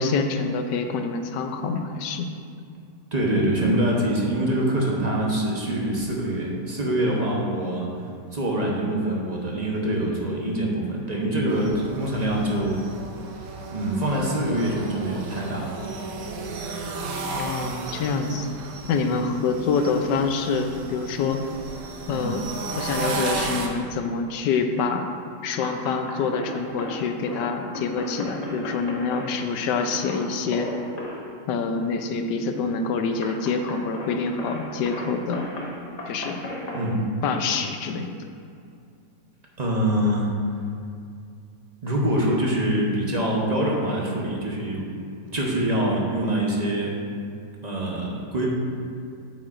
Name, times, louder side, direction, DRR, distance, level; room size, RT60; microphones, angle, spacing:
voice 1, 0.0-2.3 17.3-18.5 18.9-21.4 22.1-22.4 22.7-25.0 25.4-30.7 31.5-35.4 36.1-36.4 37.2-38.1, left 4 dB, 80° left, 6 dB, 1.2 m, -26 dB
voice 2, 3.1-7.9 8.3-12.8 13.7-15.8 22.1-22.4 36.7-37.0 39.6-40.3 41.8-44.8 45.3-46.9 47.6-48.5, right 1 dB, 35° right, -3 dB, 0.7 m, -24 dB
sound 1, 11.5-23.7, right 3 dB, 60° right, 1.0 m, -34 dB
sound 2, 25.2-37.0, left 1 dB, 45° left, 0.5 m, -37 dB
8.5 x 8.0 x 2.5 m, 2.4 s
omnidirectional pair, 1.9 m